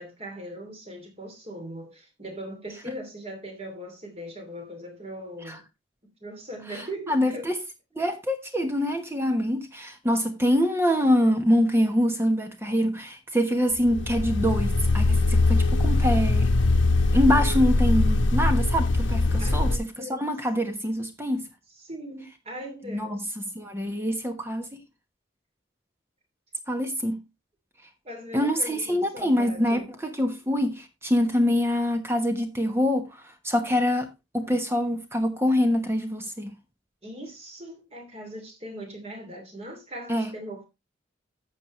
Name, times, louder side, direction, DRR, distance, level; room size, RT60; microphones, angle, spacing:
voice 1, 0.0-5.6 6.2-7.5 19.4-20.3 21.7-23.3 28.0-29.9 37.0-40.7, equal, 30° right, 2.8 m, -40 dB
voice 2, 7.1-7.5 8.0-16.5 17.1-19.7 20.1-21.4 22.9-24.7 26.7-27.2 28.3-33.1 33.4-34.1 34.3-36.5 40.1-40.3, equal, 10° right, 1.1 m, -25 dB
sound 1, 13.8-19.8, left 2 dB, 70° left, 1.1 m, -22 dB
11.5 x 7.3 x 3.1 m
head